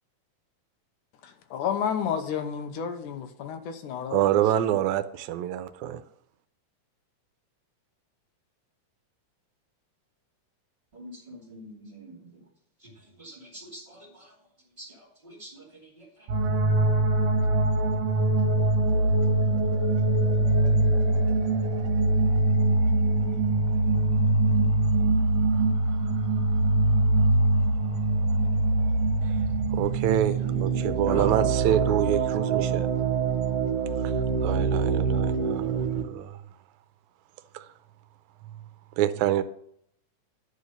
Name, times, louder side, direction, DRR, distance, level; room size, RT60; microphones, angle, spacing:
voice 1, 1.2-4.2 4.6-4.8, left 8 dB, 85° left, 2.4 m, -31 dB
voice 2, 4.1-6.0 29.7-32.9 34.0-34.1 34.4-36.4 37.5-37.7 39.0-39.4, right 11 dB, 75° right, 1.9 m, -26 dB
voice 3, 10.9-12.4 12.8-14.3 14.8-16.4 26.7-26.9 31.0-31.5 31.8-32.0, right 1 dB, 20° right, 2.1 m, -42 dB
sound 1, 16.3-36.0, right 2 dB, 60° right, 1.9 m, -23 dB
10.5 x 5.0 x 6.7 m
omnidirectional pair, 3.6 m